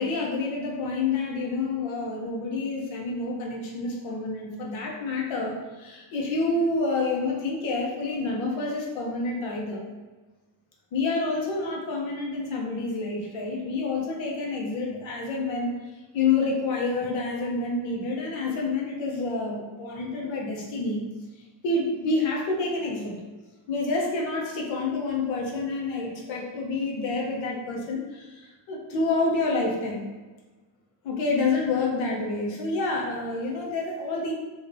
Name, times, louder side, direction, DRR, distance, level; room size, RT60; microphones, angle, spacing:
voice 1, 0.0-9.8 10.9-15.8 16.1-21.1 21.6-23.1 23.7-30.0 31.0-34.3, left 3 dB, 85° left, -1 dB, 1.0 m, -28 dB
3.3 x 2.6 x 3.5 m, 1.2 s
cardioid pair, 115°, 45 cm